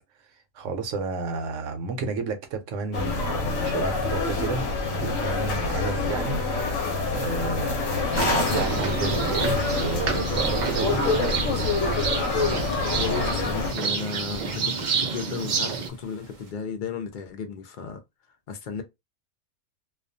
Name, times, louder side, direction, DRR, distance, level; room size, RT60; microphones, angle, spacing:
voice 1, 0.5-6.9 7.1-11.8, right 4 dB, 75° right, 0.9 m, -31 dB
sound 1, 2.9-13.7, left 3 dB, 90° left, 1.0 m, -26 dB
sound 2, 5.6-16.5, right 3 dB, 45° right, 0.7 m, -40 dB
sound 3, 8.1-15.9, right 5 dB, 90° right, 0.4 m, -30 dB
voice 2, 12.9-18.0 18.5-18.8, left 6 dB, 55° left, 0.5 m, -34 dB
2.3 x 2.2 x 2.5 m
omnidirectional pair, 1.3 m